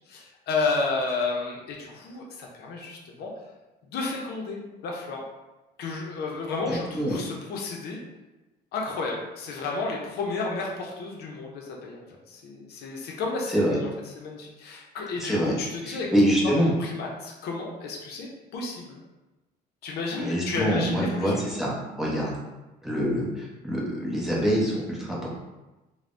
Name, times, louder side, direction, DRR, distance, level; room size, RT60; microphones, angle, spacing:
voice 1, 0.1-3.3 3.9-5.3 5.8-8.0 8.7-12.0 12.3-13.9 14.2-16.1 16.4-18.3 18.5-19.0 19.8-21.3, left 3 dB, 70° left, -1 dB, 0.6 m, -32 dB
voice 2, 6.7-7.2 13.5-13.8 15.2-15.6 15.8-16.7 20.2-22.3 22.8-25.3, equal, ahead, -6 dB, 0.7 m, -25 dB
3.2 x 2.1 x 2.5 m, 1.1 s
cardioid pair, 110°, 17 cm